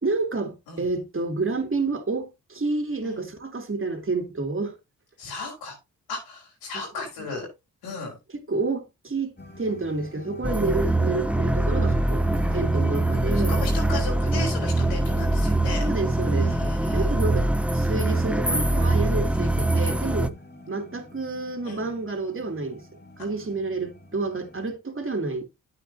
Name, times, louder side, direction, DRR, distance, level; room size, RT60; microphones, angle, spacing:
voice 1, 0.0-4.8 8.5-12.2 12.5-13.6 15.8-16.5 16.9-20.3 20.7-22.8 23.2-25.4, right 3 dB, 35° right, 2.9 m, -29 dB
voice 2, 5.2-5.8 6.1-7.5 7.8-8.2 13.3-15.9 16.4-17.2 21.7-21.9, left 3 dB, 85° left, 5.1 m, -35 dB
sound 1, 9.4-24.7, left 1 dB, 25° left, 2.6 m, -43 dB
sound 2, 10.4-20.3, right 2 dB, 5° right, 0.9 m, -23 dB
9.9 x 8.5 x 2.9 m
hypercardioid pair, 40°, 37 cm